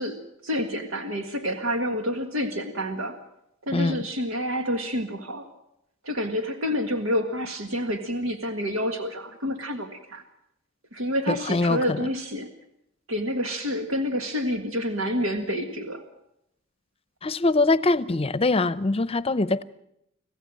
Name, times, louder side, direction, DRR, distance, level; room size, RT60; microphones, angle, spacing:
voice 1, 0.0-3.2 3.6-5.5 6.0-10.2 10.9-12.5 13.1-16.0, equal, 85° right, 1.8 m, -28 dB
voice 2, 3.7-4.0 11.3-11.8 17.2-19.6, left 2 dB, 30° left, 0.7 m, -23 dB
26.0 x 16.0 x 7.7 m
head